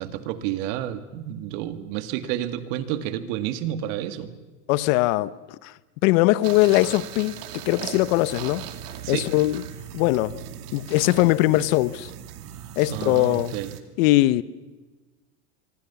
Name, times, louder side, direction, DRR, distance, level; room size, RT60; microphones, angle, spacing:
voice 1, 0.0-4.3 9.0-9.3 12.9-13.7, right 12 dB, 55° right, 2.1 m, -30 dB
voice 2, 4.7-5.3 5.6-5.7 6.0-7.4 7.7-8.6 9.1-9.6 9.9-10.3 10.7-12.1 12.8-13.5 14.0-14.4, left 18 dB, 60° left, 1.0 m, -20 dB
sound 1, 6.4-13.8, right 10 dB, 75° right, 2.5 m, -38 dB
25.5 x 24.0 x 7.1 m
supercardioid pair, 135°, 46 cm